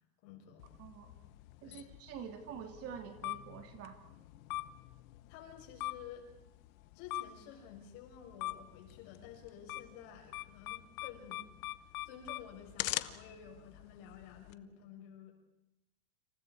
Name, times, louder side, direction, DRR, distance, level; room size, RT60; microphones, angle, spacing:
voice 1, 0.2-0.7 1.6-1.9 5.3-6.3 6.9-11.5 12.0-15.3, left 7 dB, 50° left, 2 dB, 6.9 m, -52 dB
sound 1, 0.6-14.5, left 17 dB, 70° left, 1.2 m, -44 dB
voice 2, 0.8-1.1 1.6-4.0, right 7 dB, 35° right, 5 dB, 2.7 m, -47 dB
30.0 x 28.0 x 4.8 m, 0.84 s
supercardioid pair, 175°, 43 cm